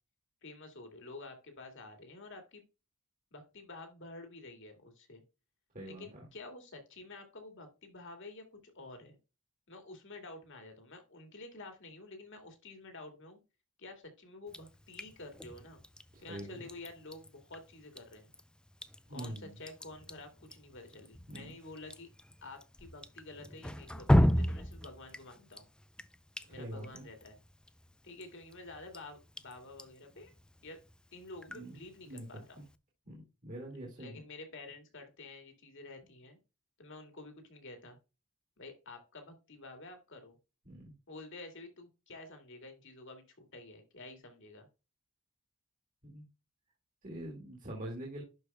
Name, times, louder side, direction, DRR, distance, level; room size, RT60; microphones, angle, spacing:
voice 1, 0.4-2.6 3.3-5.2 5.8-9.2 9.7-13.4 13.8-15.8 16.2-18.3 19.1-22.1 22.4-25.6 26.5-27.4 28.0-30.3 30.6-30.8 31.1-32.6 34.0-36.4 36.8-38.0 38.6-40.4 41.1-44.7, left 2 dB, 55° left, 5 dB, 2.1 m, -50 dB
voice 2, 5.7-6.3 16.1-16.7 19.1-19.5 21.3-21.5 26.6-27.0 31.5-31.8 32.1-32.6 33.1-34.2 40.7-40.8 46.0-46.3 47.0-48.2, right 1 dB, 35° right, -1 dB, 2.0 m, -44 dB
Drip, 14.5-32.8, equal, 5° left, 0.3 m, -37 dB
11.0 x 4.8 x 2.2 m, 0.29 s
head